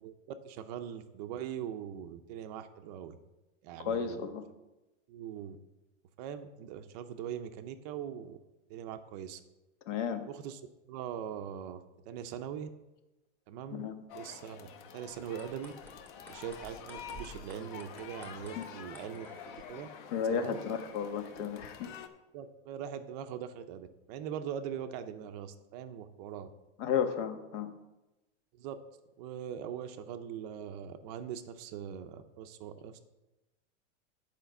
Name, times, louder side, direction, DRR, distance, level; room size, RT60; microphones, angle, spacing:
voice 1, 0.0-3.2 3.6-4.3 5.1-5.6 6.2-8.4 8.7-9.4 10.3-10.6 10.9-12.7 13.5-14.7 14.9-15.7 16.3-19.9 20.3-20.6 22.3-26.5 28.5-28.8 29.2-33.0, right 9 dB, 35° right, 9 dB, 0.5 m, -41 dB
voice 2, 3.8-4.4 9.9-10.2 13.7-14.0 18.6-18.7 20.1-21.9 26.8-27.7, left 7 dB, 70° left, 8 dB, 1.3 m, -33 dB
sound 1, 14.1-22.1, left 7 dB, 40° left, 0.8 m, -48 dB
sound 2, 15.3-19.6, right 1 dB, 5° left, 0.9 m, -53 dB
8.9 x 5.1 x 6.8 m, 1.0 s
supercardioid pair, 160°, 37 cm